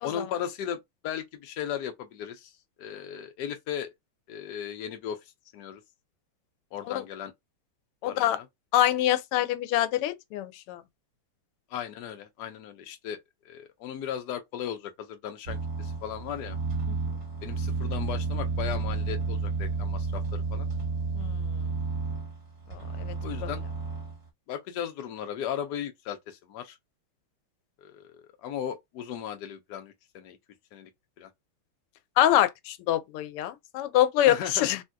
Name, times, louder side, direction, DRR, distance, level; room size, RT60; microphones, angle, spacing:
voice 1, 0.0-2.5 2.8-3.9 4.3-5.2 5.5-5.8 6.7-7.3 8.0-8.5 11.7-16.6 17.4-20.7 23.2-23.6 24.5-26.8 27.8-30.4 30.7-30.9 31.2-31.3 34.3-34.7, left 9 dB, 65° left, 1.1 m, -36 dB
voice 2, 8.0-8.4 8.7-10.8 16.9-17.2 21.2-21.6 22.7-23.1 23.4-23.5 32.2-34.8, left 12 dB, 90° left, 1.5 m, -25 dB
sound 1, 15.5-24.2, right 4 dB, 40° right, 1.4 m, -31 dB
3.5 x 2.7 x 2.2 m
omnidirectional pair, 2.4 m